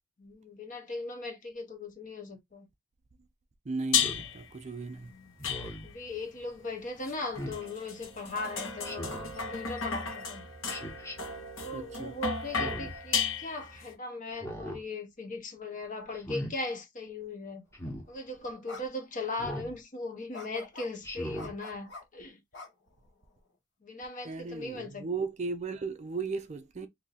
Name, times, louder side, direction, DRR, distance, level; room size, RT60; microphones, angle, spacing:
voice 1, 0.2-2.7 4.9-5.3 5.8-10.5 11.6-17.6 18.1-22.4 23.8-25.1, left 2 dB, 40° left, 0.9 m, -39 dB
voice 2, 3.6-5.1 11.7-12.1 24.2-26.9, right 4 dB, 35° right, 0.4 m, -36 dB
sound 1, 3.9-4.5 5.4-6.1 7.1-13.9, left 6 dB, 80° left, 1.1 m, -34 dB
Speech synthesizer, 3.9-4.3 5.4-5.9 7.3-7.6 8.8-9.3 10.7-11.2 12.5-13.0 14.3-14.8 16.1-16.5 17.7-18.0 19.4-19.7 21.0-21.5, equal, 15° left, 1.0 m, -39 dB
sound 2, 17.8-18.0 18.7-18.8 19.2-19.3 20.3-20.9 21.4-22.0 22.5-23.3, left 3 dB, 60° left, 1.2 m, -46 dB
2.7 x 2.6 x 4.0 m
head